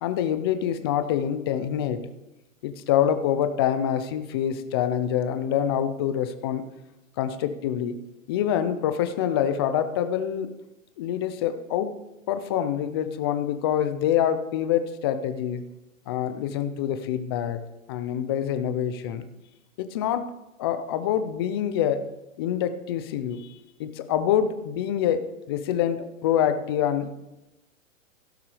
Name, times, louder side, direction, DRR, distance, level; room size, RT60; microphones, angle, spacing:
voice 1, 0.0-2.1 2.6-6.6 7.2-8.0 8.3-10.5 11.0-11.9 12.3-15.6 16.1-17.6 17.9-19.2 19.8-20.3 20.6-22.0 22.4-27.1, left 9 dB, 20° left, 10 dB, 0.4 m, -26 dB
16.5 x 5.9 x 4.8 m, 0.96 s
hypercardioid pair, 140°, 41 cm